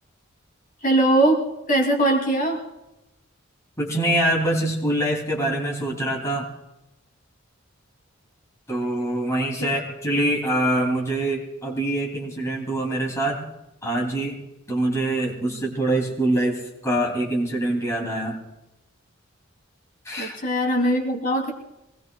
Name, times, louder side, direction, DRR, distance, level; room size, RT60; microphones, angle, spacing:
voice 1, 0.8-1.4 1.7-2.6 9.6-9.7 20.2-21.5, right 1 dB, 45° left, 0 dB, 2.7 m, -21 dB
voice 2, 3.8-6.5 8.7-13.4 13.8-14.4 14.7-18.4 20.0-20.4, right 1 dB, 15° left, -2 dB, 2.8 m, -24 dB
25.0 x 19.5 x 2.3 m, 0.90 s
head